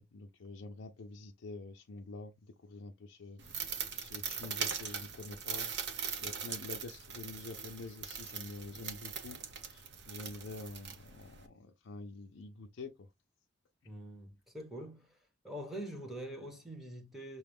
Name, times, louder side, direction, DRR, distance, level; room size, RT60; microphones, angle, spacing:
voice 1, 0.0-5.7 6.2-13.1, left 3 dB, 80° left, 0.5 m, -47 dB
sound 1, 3.4-11.5, right 7 dB, 65° right, 0.9 m, -41 dB
voice 2, 13.8-15.1 15.4-17.4, right 1 dB, ahead, 1.1 m, -44 dB
5.8 x 2.3 x 3.4 m
head